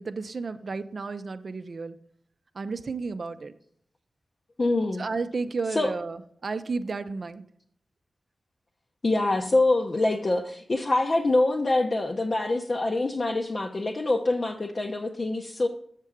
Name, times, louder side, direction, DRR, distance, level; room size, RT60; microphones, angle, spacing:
voice 1, 0.0-2.0 2.5-3.5 5.0-7.5, right 4 dB, 55° right, 11 dB, 0.5 m, -32 dB
voice 2, 4.6-5.0 5.7-5.9 9.0-15.7, left 2 dB, 40° left, 2 dB, 0.6 m, -25 dB
7.4 x 6.6 x 3.6 m, 0.65 s
wide cardioid pair, 90°, 0 cm